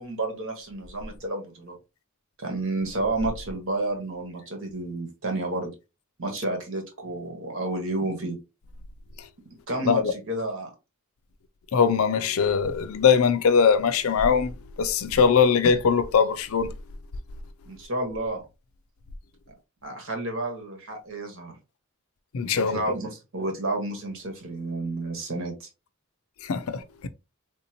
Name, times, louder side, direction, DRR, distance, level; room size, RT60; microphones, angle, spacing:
voice 1, 0.0-1.8 2.4-5.7 6.2-8.4 9.7-10.7 17.6-18.4 19.8-21.5 22.5-25.7, right 2 dB, 65° right, 1.3 m, -30 dB
voice 2, 11.7-16.7 22.3-22.8 26.5-27.1, left 6 dB, 70° left, 0.4 m, -21 dB
3.6 x 2.6 x 2.8 m
head